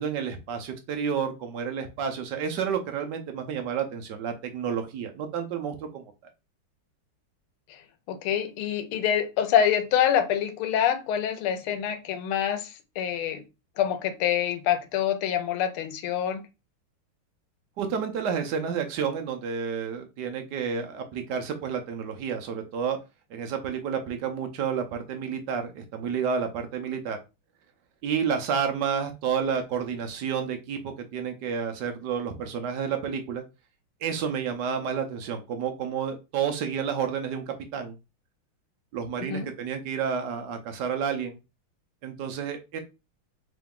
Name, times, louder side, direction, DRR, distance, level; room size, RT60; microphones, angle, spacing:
voice 1, 0.0-6.0 17.8-23.0 23.3-27.2 28.0-33.4 34.0-37.9 38.9-41.4 42.0-42.8, right 7 dB, 75° right, 1.0 m, -30 dB
voice 2, 8.1-12.7 13.0-13.4 13.8-16.4 39.3-39.5, left 9 dB, 80° left, 1.5 m, -26 dB
3.7 x 3.0 x 3.5 m
omnidirectional pair, 2.4 m